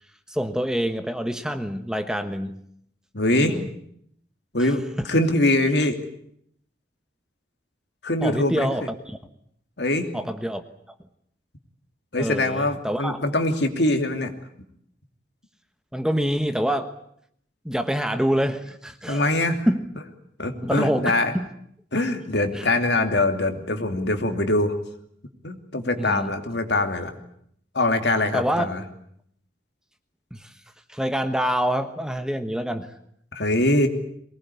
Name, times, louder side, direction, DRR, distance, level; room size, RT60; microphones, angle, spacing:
voice 1, 0.3-2.6 3.3-3.7 4.6-5.1 8.2-9.2 10.1-10.6 12.2-13.2 15.9-16.9 17.6-19.4 19.7-19.9 20.6-21.5 22.5-22.7 26.0-26.3 28.3-28.7 30.3-30.5 30.9-32.9, equal, 5° right, 8 dB, 1.3 m, -26 dB
voice 2, 3.1-3.6 4.5-6.0 8.0-8.7 9.8-10.1 12.1-14.3 19.1-19.7 20.4-21.3 21.9-24.8 25.4-27.1 27.7-28.8 33.3-33.9, left 2 dB, 65° left, 6 dB, 2.9 m, -23 dB
23.5 x 19.5 x 9.8 m, 0.70 s
head